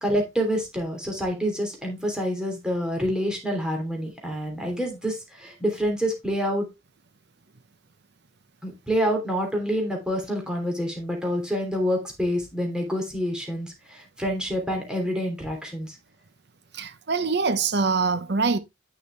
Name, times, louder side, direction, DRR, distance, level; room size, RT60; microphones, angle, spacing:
voice 1, 0.0-6.7 8.6-15.9, equal, 5° right, 3.1 m, -27 dB
voice 2, 16.7-18.6, right 4 dB, 55° right, 0.9 m, -24 dB
9.1 x 6.5 x 3.3 m
head